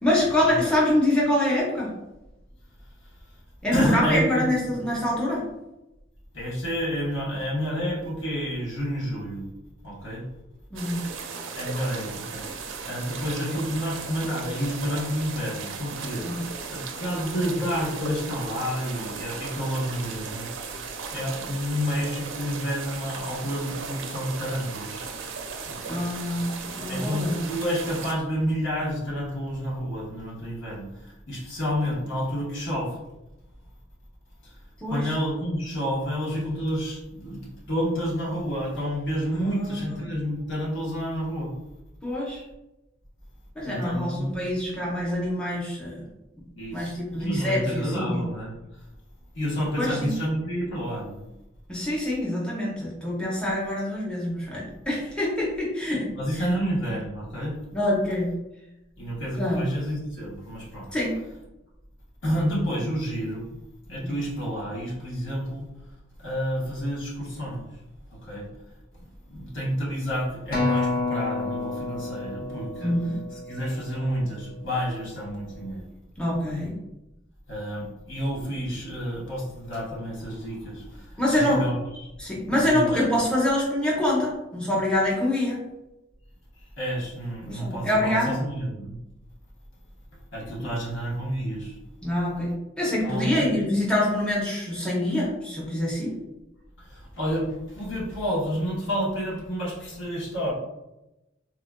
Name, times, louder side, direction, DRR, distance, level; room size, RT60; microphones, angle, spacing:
voice 1, 0.0-1.9 3.6-5.4 10.7-11.0 16.2-16.4 25.9-27.4 34.8-35.1 39.3-40.0 42.0-42.4 43.6-46.0 46.7-48.2 49.8-50.1 51.7-56.1 57.7-58.3 59.4-59.7 60.9-61.2 64.0-64.1 72.8-73.2 76.2-76.8 81.2-81.6 82.2-85.6 87.5-88.4 92.0-96.2, left 1 dB, 5° left, -5 dB, 0.6 m, -25 dB
voice 2, 3.7-4.5 6.3-9.4 9.8-10.2 11.5-12.4 12.8-16.3 16.7-20.5 21.1-25.0 25.7-26.0 26.9-30.9 31.3-32.9 34.9-41.5 43.7-44.4 46.5-48.5 49.3-51.2 56.1-57.5 59.0-60.9 62.2-63.4 63.9-65.7 66.2-67.6 68.3-68.5 69.3-73.0 73.3-75.8 76.5-76.7 77.5-80.8 81.3-81.7 82.6-83.0 86.8-88.9 90.3-91.7 93.0-93.5 97.2-97.5 97.7-100.5, equal, 70° left, -5 dB, 1.1 m, -29 dB
sound 1, 10.8-28.1, right 5 dB, 80° right, 0.4 m, -36 dB
Acoustic guitar, 70.5-74.9 75.6-75.7, left 3 dB, 50° left, 0.7 m, -30 dB
3.6 x 2.3 x 2.2 m, 0.95 s
head